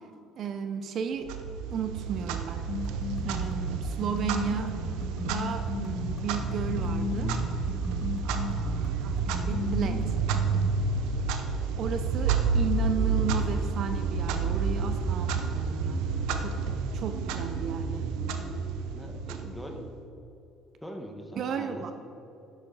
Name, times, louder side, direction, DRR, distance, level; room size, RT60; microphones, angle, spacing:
voice 1, 0.4-1.3 1.7-2.6 3.2-4.8 5.2-7.3 8.2-10.0 11.8-16.1 16.4-16.6 16.9-18.0 21.4-21.9, right 8 dB, 55° right, 8 dB, 0.7 m, -34 dB
Clock, 1.3-20.0, right 4 dB, 85° right, 0.9 m, -30 dB
sound 1, 2.7-10.7, left 5 dB, 50° left, 1.3 m, -36 dB
voice 2, 18.9-19.9 20.8-21.9, equal, 5° left, 2 dB, 1.5 m, -42 dB
12.0 x 9.5 x 4.0 m, 2.9 s
cardioid pair, 110°, 0 cm